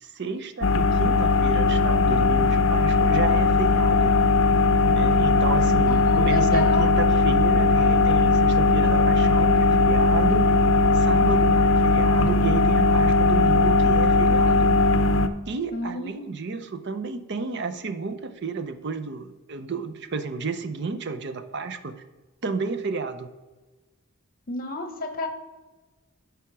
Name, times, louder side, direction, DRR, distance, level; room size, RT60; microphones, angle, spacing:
voice 1, 0.0-4.2 4.9-10.5 10.9-14.7 15.5-22.0 22.4-23.3, right 4 dB, 55° right, 10 dB, 0.6 m, -31 dB
sound 1, 0.6-15.3, left 3 dB, 60° left, 0.5 m, -19 dB
voice 2, 5.9-6.9 15.7-16.4 24.5-25.3, left 2 dB, 40° left, 8 dB, 0.9 m, -30 dB
10.5 x 3.5 x 6.0 m, 1.2 s
head